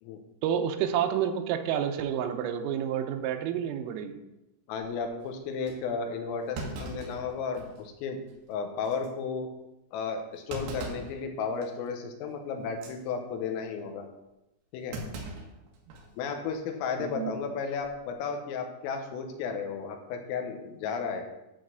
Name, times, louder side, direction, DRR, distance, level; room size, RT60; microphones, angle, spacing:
voice 1, 0.4-4.1 17.0-17.4, right 9 dB, 85° right, 7 dB, 3.5 m, -29 dB
voice 2, 4.7-8.2 8.5-9.5 9.9-14.1 14.7-15.0 16.2-21.2, left 5 dB, 85° left, 5 dB, 3.8 m, -33 dB
Thump thud, 5.0-5.1 5.7-5.8 6.5-7.9 8.3-8.4 8.8-9.1 10.5-11.2 11.6-11.9 12.7-13.0 14.9-16.1 16.4-16.5 17.7-18.0, right 2 dB, 65° right, 3.7 m, -40 dB
11.5 x 4.1 x 7.8 m, 0.93 s
omnidirectional pair, 5.9 m